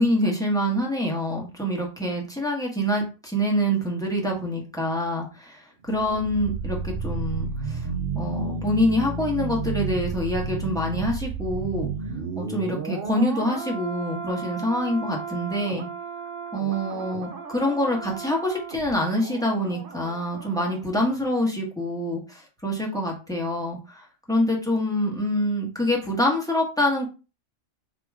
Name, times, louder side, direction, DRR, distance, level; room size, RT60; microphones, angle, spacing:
voice 1, 0.0-7.9 8.1-11.9 12.3-15.9 16.5-27.0, equal, 5° left, -1 dB, 1.2 m, -26 dB
sound 1, 5.8-20.8 21.1-21.3, right 4 dB, 50° right, 0.8 m, -33 dB
3.8 x 2.9 x 4.7 m, 0.31 s
omnidirectional pair, 1.4 m